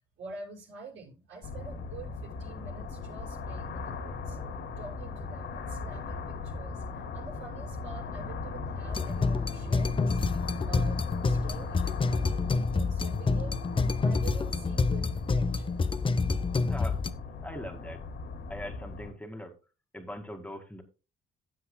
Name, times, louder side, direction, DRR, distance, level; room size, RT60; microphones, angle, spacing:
voice 1, 0.2-4.4 4.8-10.2 10.6-15.8, right 4 dB, 75° right, 5.8 m, -47 dB
sound 1, 1.4-19.1, left 4 dB, 75° left, 2.5 m, -39 dB
sound 2, 8.9-17.1, left 4 dB, 25° left, 0.7 m, -28 dB
voice 2, 17.4-18.0 18.5-19.5 19.9-20.8, left 1 dB, 5° left, 2.0 m, -41 dB
15.5 x 7.8 x 2.2 m
cardioid pair, 90°, 20 cm